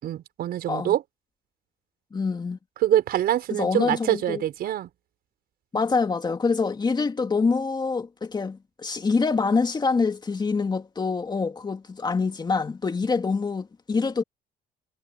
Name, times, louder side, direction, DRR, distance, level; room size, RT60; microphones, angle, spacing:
voice 1, 0.0-1.0 2.8-4.9, right 12 dB, 65° right, 5.8 m, -24 dB
voice 2, 2.1-2.6 3.5-4.4 5.7-14.2, left 4 dB, 25° left, 2.4 m, -25 dB
cardioid pair, 110°, 17 cm